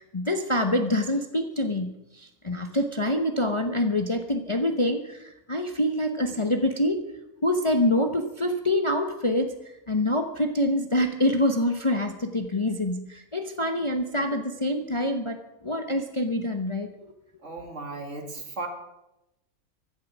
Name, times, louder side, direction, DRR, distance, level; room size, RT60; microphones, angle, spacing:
voice 1, 0.0-7.0 7.4-9.5 9.9-16.9, left 1 dB, 25° left, 6 dB, 0.9 m, -26 dB
voice 2, 17.4-18.7, right 3 dB, 55° right, 4 dB, 2.5 m, -36 dB
15.5 x 11.5 x 6.1 m, 0.91 s
omnidirectional pair, 1.5 m